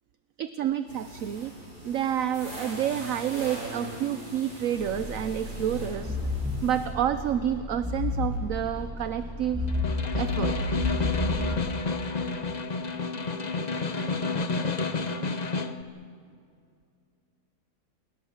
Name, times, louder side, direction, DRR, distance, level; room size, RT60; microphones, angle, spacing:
voice 1, 0.4-1.5 1.8-6.2 6.6-9.6 10.2-10.8, right 10 dB, 65° right, 11 dB, 1.1 m, -29 dB
sound 1, 0.9-6.9, right 1 dB, 85° right, 7.9 m, -41 dB
sound 2, 4.8-11.6, left 2 dB, 10° right, 7.7 m, -32 dB
Snare drum, 9.7-15.8, left 3 dB, 30° left, 0.9 m, -30 dB
29.0 x 21.0 x 7.3 m, 2.3 s
omnidirectional pair, 1.7 m